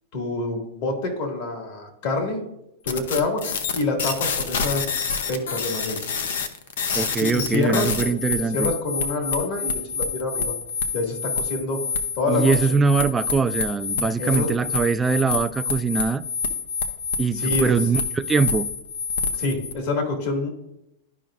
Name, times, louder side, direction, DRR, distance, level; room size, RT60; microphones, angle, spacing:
voice 1, 0.1-2.4 2.8-3.4 3.7-5.0 5.3-6.0 7.1-10.5 10.9-11.8 12.2-12.6 14.2-14.6 17.3-17.7 19.4-20.5, left 2 dB, 55° left, 2 dB, 2.1 m, -27 dB
sound 1, 2.9-19.7, left 5 dB, 75° left, 0.7 m, -27 dB
voice 2, 6.9-8.7 12.3-16.2 17.2-18.7, right 5 dB, 15° right, 11 dB, 0.4 m, -22 dB
12.0 x 5.0 x 2.5 m, 0.84 s
hypercardioid pair, 135°, 0 cm